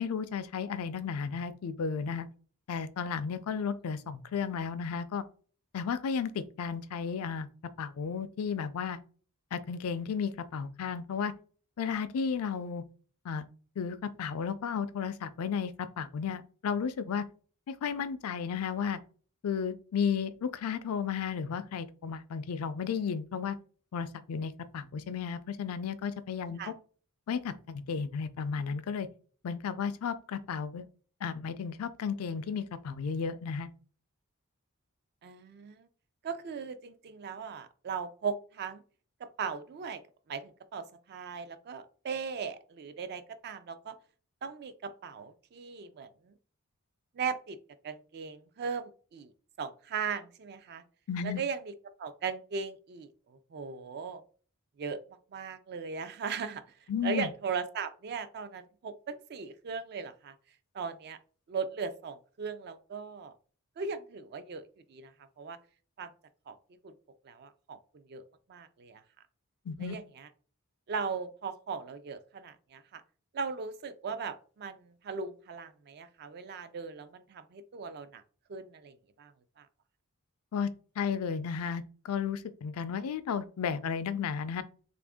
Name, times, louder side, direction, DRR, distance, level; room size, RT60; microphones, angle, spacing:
voice 1, 0.0-2.3 2.7-5.2 5.7-7.5 7.8-9.0 9.5-11.3 11.8-12.8 13.2-13.5 13.8-17.3 17.7-19.0 19.4-23.6 23.9-26.6 27.3-29.1 29.4-30.9 31.2-33.7 51.1-51.4 56.9-57.3 69.7-70.0 80.5-80.7 81.0-84.6, left 6 dB, 70° left, 0.4 m, -33 dB
voice 2, 35.2-35.9 36.2-38.8 39.4-40.0 40.3-43.9 44.4-46.3 47.1-47.6 47.8-49.3 49.6-50.8 51.2-51.7 52.0-54.2 54.8-55.0 55.3-56.6 57.0-60.3 60.7-61.2 61.5-63.3 63.8-64.6 64.9-65.6 66.0-66.1 66.5-66.6 66.8-66.9 67.2-68.2 68.5-69.0 69.8-70.3 70.9-73.0 73.3-78.2 78.5-79.3 79.6-79.7, right 5 dB, 45° right, 0.3 m, -38 dB
3.3 x 2.5 x 3.5 m
head